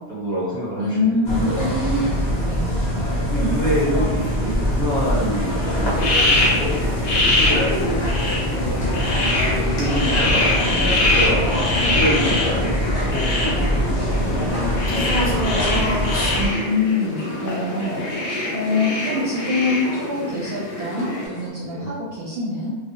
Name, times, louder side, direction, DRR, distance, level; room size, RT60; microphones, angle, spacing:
voice 1, 0.1-1.6 2.6-2.9 3.2-8.0 8.8-15.2 18.3-18.5 21.6-21.9, equal, 5° left, -10 dB, 1.0 m, -28 dB
voice 2, 0.8-1.6 2.4-2.6 16.4-22.7, left 3 dB, 65° right, -7 dB, 0.7 m, -24 dB
sound 1, 1.2-16.5, equal, 45° left, 0.8 m, -23 dB
sound 2, 5.6-21.5, left 1 dB, 25° left, 0.3 m, -33 dB
sound 3, 6.0-21.3, left 2 dB, 70° left, 0.9 m, -24 dB
2.3 x 2.0 x 2.8 m, 1.4 s
omnidirectional pair, 1.2 m